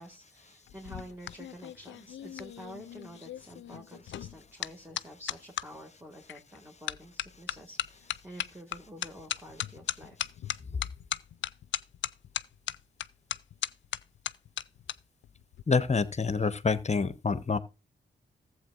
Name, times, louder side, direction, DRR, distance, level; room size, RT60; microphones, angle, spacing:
voice 1, 0.0-10.2, equal, 10° right, 1.9 m, -48 dB
sound 1, 0.7-5.7 6.3-6.6 6.9-15.0 15.2-15.6, left 11 dB, 75° left, 0.4 m, -37 dB
voice 2, 15.7-17.6, left 4 dB, 35° left, 0.9 m, -27 dB
14.5 x 7.8 x 2.4 m
supercardioid pair, 45°, 20 cm